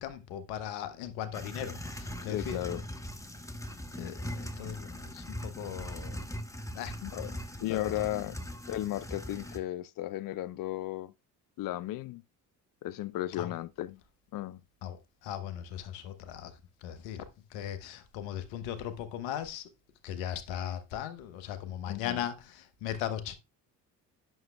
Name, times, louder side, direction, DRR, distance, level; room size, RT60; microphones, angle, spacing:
voice 1, 0.0-2.6 4.0-6.2 6.7-6.9 7.2-7.4 7.7-7.9 13.4-13.5 14.8-16.5 16.8-17.3 17.5-19.7 20.0-23.3, left 10 dB, 70° left, 1.1 m, -38 dB
sound 1, 1.3-9.6, equal, 5° left, 1.1 m, -40 dB
voice 2, 2.2-2.8 7.0-8.4 8.7-11.1 11.6-12.2 12.8-14.0 14.3-14.6 21.9-22.2, left 15 dB, 45° left, 0.5 m, -35 dB
11.0 x 6.4 x 2.3 m
figure-of-eight pair, 50°, 49 cm